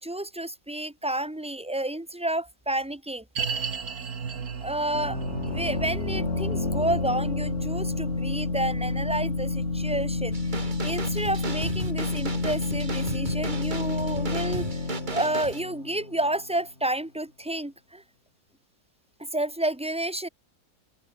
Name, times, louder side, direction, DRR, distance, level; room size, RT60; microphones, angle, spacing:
voice 1, 0.0-3.2 4.6-5.2 5.5-10.4 10.8-14.6 15.1-18.0 19.3-20.3, right 1 dB, 5° right, 1.9 m, -30 dB
sound 1, 3.4-14.6 14.9-15.0 15.6-15.7, right 6 dB, 65° right, 2.4 m, -38 dB
sound 2, 4.9-16.5, left 3 dB, 45° left, 3.2 m, -29 dB
sound 3, 10.3-15.6, right 4 dB, 30° right, 1.7 m, -36 dB
open air
omnidirectional pair, 1.7 m